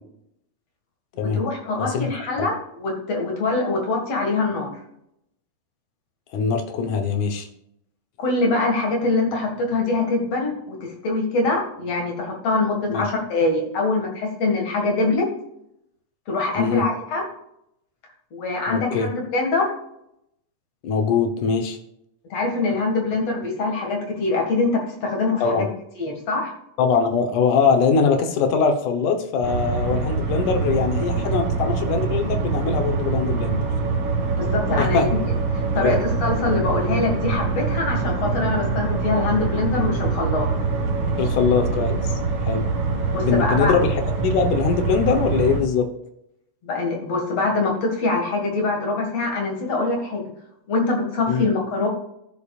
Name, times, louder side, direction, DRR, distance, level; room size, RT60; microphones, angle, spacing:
voice 1, 1.1-4.7 8.2-15.3 16.3-17.2 18.3-19.7 22.3-25.7 26.0-26.5 34.4-35.1 35.7-40.5 43.1-43.7 46.6-50.2 50.7-51.9, left 3 dB, 55° left, 1 dB, 2.9 m, -23 dB
voice 2, 6.3-7.5 12.9-13.1 16.6-16.9 18.7-19.1 20.8-21.8 25.4-25.7 26.8-33.6 34.8-35.1 35.7-36.0 41.2-42.1 42.5-42.7 43.2-45.9 51.3-51.5, left 5 dB, 85° left, 5 dB, 2.6 m, -22 dB
sound 1, 29.4-45.6, right 4 dB, 55° right, 2.6 m, -24 dB
14.5 x 7.1 x 2.4 m, 0.78 s
omnidirectional pair, 3.5 m